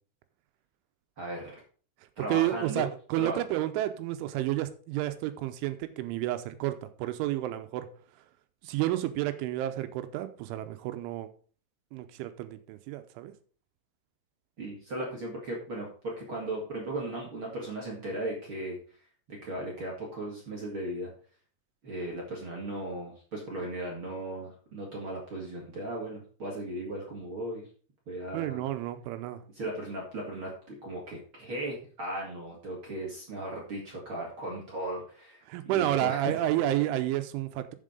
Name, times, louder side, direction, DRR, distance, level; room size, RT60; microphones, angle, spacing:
voice 1, 1.2-1.5 2.2-2.9 3.2-3.4 14.6-18.8 19.3-21.1 21.8-27.6 28.1-28.7 29.5-36.4, right 1 dB, 45° right, -2 dB, 1.8 m, -37 dB
voice 2, 2.3-7.9 8.6-11.3 11.9-13.3 28.3-29.4 35.5-37.8, right 14 dB, 85° right, 10 dB, 3.1 m, -30 dB
7.5 x 7.4 x 5.2 m, 0.42 s
omnidirectional pair, 5.6 m